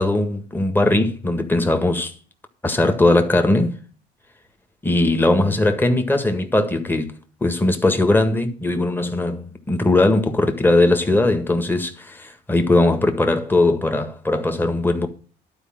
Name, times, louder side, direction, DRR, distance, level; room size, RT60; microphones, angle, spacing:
voice 1, 0.0-2.1 2.6-3.7 4.8-7.1 7.4-15.1, left 2 dB, 10° left, 1.7 m, -19 dB
11.5 x 4.8 x 7.5 m
cardioid pair, 110°, 17 cm